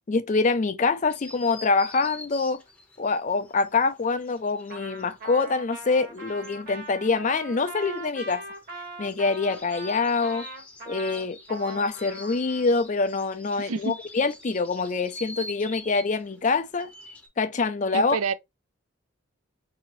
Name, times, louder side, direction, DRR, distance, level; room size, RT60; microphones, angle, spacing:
voice 1, 0.1-2.6 3.0-8.4 9.0-10.5 10.9-16.9 17.4-18.2, left 4 dB, 35° left, 0.4 m, -25 dB
sound 1, 1.1-5.6 5.9-17.3, left 2 dB, 5° left, 0.7 m, -46 dB
Trumpet, 4.7-12.7, right 2 dB, 40° right, 1.2 m, -41 dB
voice 2, 13.6-14.0 17.9-18.3, right 5 dB, 75° right, 0.5 m, -28 dB
4.9 x 2.8 x 3.0 m
head